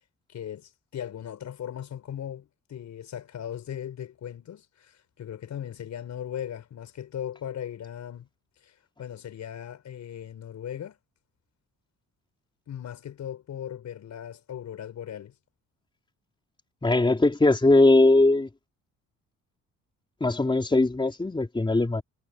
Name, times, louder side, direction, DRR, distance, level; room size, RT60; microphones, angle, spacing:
voice 1, 0.3-8.3 8.6-8.7 9.0-11.0 12.7-15.4, left 9 dB, 65° left, 5.3 m, -38 dB
voice 2, 16.8-18.5 20.2-22.0, left 2 dB, 15° left, 3.5 m, -20 dB
cardioid pair, 90°, 30 cm